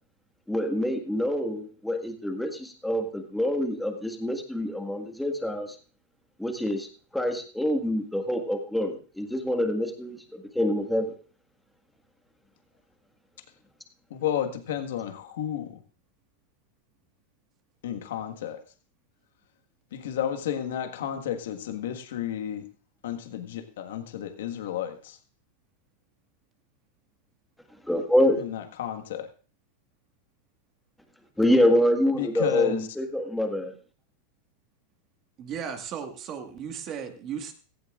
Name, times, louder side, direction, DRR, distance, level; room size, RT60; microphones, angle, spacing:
voice 1, 0.5-5.8 6.4-6.9 7.1-11.1 27.9-28.5 31.4-33.7, left 1 dB, ahead, 4 dB, 1.7 m, -26 dB
voice 2, 14.1-15.8 17.8-18.6 19.9-22.7 23.0-25.2 28.4-29.3 32.1-32.9, left 10 dB, 85° left, 6 dB, 1.6 m, -32 dB
voice 3, 35.4-37.5, right 7 dB, 35° right, 5 dB, 1.8 m, -35 dB
16.5 x 15.5 x 2.5 m, 0.39 s
supercardioid pair, 155°, 0 cm